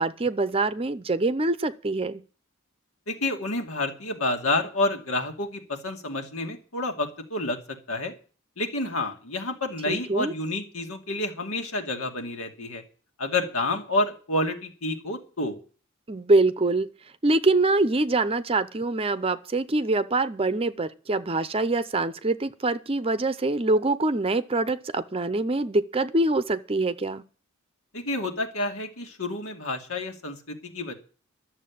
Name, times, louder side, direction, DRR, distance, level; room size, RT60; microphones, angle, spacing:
voice 1, 0.0-2.2 9.9-10.3 16.1-16.9 17.2-27.2, right 2 dB, 25° right, 0.6 m, -24 dB
voice 2, 3.1-7.6 7.9-8.1 8.6-12.8 13.2-15.6 27.9-30.9, left 2 dB, 90° left, 2.5 m, -29 dB
12.5 x 7.3 x 8.5 m
head